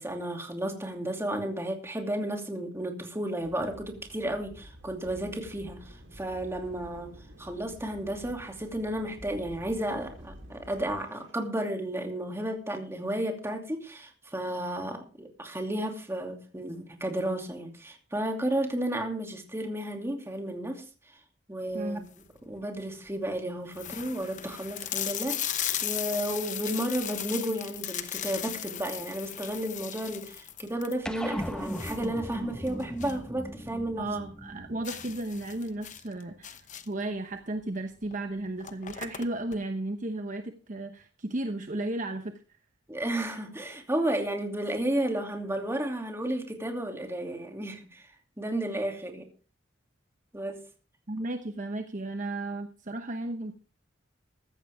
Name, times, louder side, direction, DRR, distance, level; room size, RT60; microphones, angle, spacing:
voice 1, 0.0-7.1 7.4-20.8 21.5-22.0 22.4-34.1 42.9-48.1 48.4-49.3 50.3-50.6, right 1 dB, 15° right, 3 dB, 2.6 m, -33 dB
sound 1, 3.4-11.5, equal, 90° right, 3.7 m, -49 dB
voice 2, 21.7-22.0 34.0-36.6 36.9-42.3 51.1-53.5, right 2 dB, 40° right, 7 dB, 1.0 m, -34 dB
sound 2, 21.9-22.4 23.0-23.1 23.3-23.4 23.7-33.3 33.6-33.7 34.1-34.2 34.8-37.1 38.0-38.2 38.4-39.6, left 10 dB, 40° left, 0.9 m, -36 dB
sound 3, 31.1-35.8, equal, 5° left, 1.1 m, -38 dB
15.0 x 13.0 x 3.5 m, 0.36 s
head